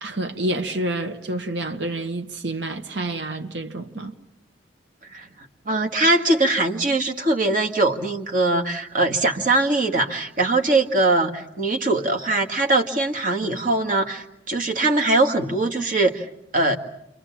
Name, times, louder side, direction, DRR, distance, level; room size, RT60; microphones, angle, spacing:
voice 1, 0.0-4.2, right 1 dB, 70° right, 1.4 m, -28 dB
voice 2, 5.7-16.3 16.5-16.8, right 2 dB, 45° right, 2.0 m, -21 dB
28.5 x 24.0 x 7.3 m
head